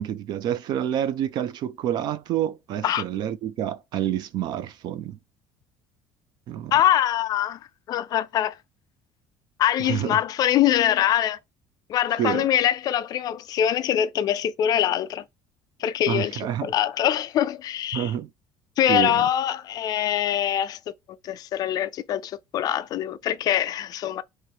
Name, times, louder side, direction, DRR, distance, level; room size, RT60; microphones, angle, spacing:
voice 1, 0.0-5.2 6.5-6.7 9.8-10.2 12.2-12.5 16.1-16.7 17.9-18.3 18.9-19.3, right 10 dB, 45° right, 0.4 m, -28 dB
voice 2, 6.7-7.6 7.9-8.6 9.6-11.4 11.9-15.2 15.8-18.1 18.8-20.8 21.2-24.2, left 11 dB, 40° left, 0.3 m, -23 dB
3.1 x 2.9 x 4.5 m
cardioid pair, 175°, 10 cm